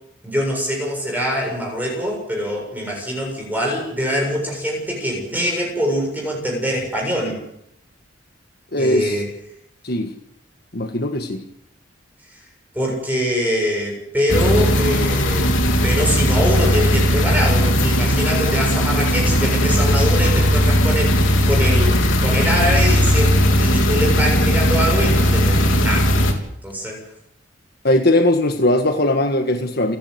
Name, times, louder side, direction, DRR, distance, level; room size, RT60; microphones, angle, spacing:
voice 1, 0.2-7.4 8.8-9.3 12.7-15.5 15.8-26.1 26.6-27.0, equal, 10° right, -1 dB, 7.4 m, -23 dB
voice 2, 8.7-9.1 9.8-10.1 10.7-11.4 27.8-30.0, left 1 dB, 50° left, 6 dB, 1.6 m, -19 dB
sound 1, 14.3-26.3, equal, 85° left, 3.7 m, -17 dB
29.0 x 11.5 x 8.2 m, 0.74 s
head